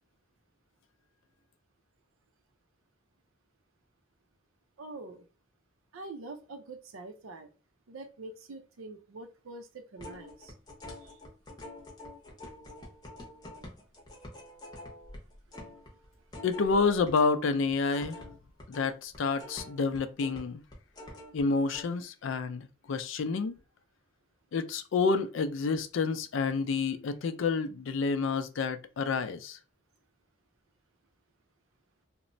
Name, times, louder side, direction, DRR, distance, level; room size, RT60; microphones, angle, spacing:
voice 1, 4.8-5.3 5.9-7.5 7.9-10.5 11.0-11.2, right 3 dB, 90° right, 0.5 m, -45 dB
sound 1, 10.0-17.4 17.7-21.4 21.7-21.8, left 1 dB, 20° left, 0.6 m, -46 dB
voice 2, 16.4-18.2 18.7-20.6 21.3-23.5 24.5-29.6, left 4 dB, 70° left, 0.4 m, -29 dB
2.9 x 2.1 x 2.5 m
head